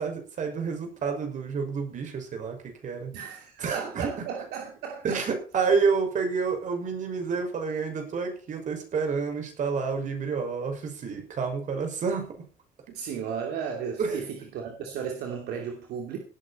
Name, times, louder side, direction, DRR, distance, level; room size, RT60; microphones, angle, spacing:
voice 1, 0.0-3.1 3.6-4.1 5.0-12.3 14.0-14.2, right 5 dB, 50° right, 4 dB, 5.9 m, -29 dB
voice 2, 3.1-5.3 12.9-16.2, right 7 dB, 80° right, 2 dB, 2.8 m, -35 dB
18.0 x 9.4 x 4.4 m, 0.36 s
cardioid pair, 105°, 16 cm